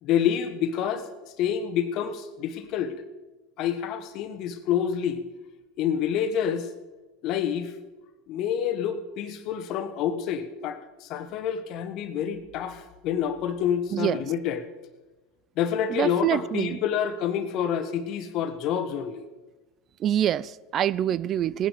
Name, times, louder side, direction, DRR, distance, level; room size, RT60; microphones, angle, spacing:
voice 1, 0.0-1.1 1.4-2.9 3.6-5.2 5.8-6.7 7.2-7.7 8.3-14.6 15.6-19.3, left 8 dB, 55° left, 1.4 m, -28 dB
voice 2, 15.9-16.8 20.0-21.7, right 10 dB, 40° right, 0.4 m, -25 dB
18.0 x 10.0 x 5.2 m
hypercardioid pair, 85°, 0 cm